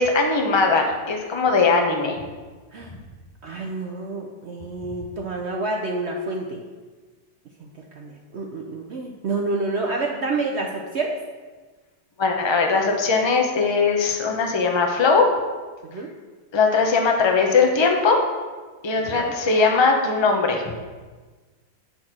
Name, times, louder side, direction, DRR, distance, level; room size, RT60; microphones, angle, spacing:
voice 1, 0.0-2.2 12.2-15.3 16.5-18.2 18.8-20.6, left 4 dB, 35° left, 2 dB, 0.4 m, -20 dB
voice 2, 3.4-6.6 7.6-7.7 7.9-11.2 15.9-16.1 19.1-19.3, right 3 dB, 65° right, 1 dB, 0.6 m, -28 dB
9.1 x 4.2 x 6.0 m, 1.4 s
omnidirectional pair, 2.0 m